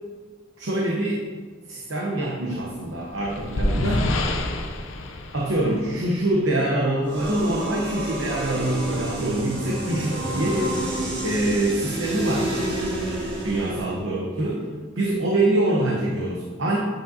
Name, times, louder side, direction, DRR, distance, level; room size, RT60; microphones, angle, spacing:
voice 1, 0.6-1.2 1.7-4.0 5.3-10.8 11.2-12.5 13.4-14.6 15.0-16.8, right 1 dB, 80° right, -3 dB, 0.9 m, -24 dB
sound 1, 2.7-6.4, left 1 dB, 90° left, 0.6 m, -27 dB
sound 2, 7.0-14.0, right 1 dB, 55° right, 1.7 m, -29 dB
8.7 x 5.1 x 2.7 m, 1.5 s
head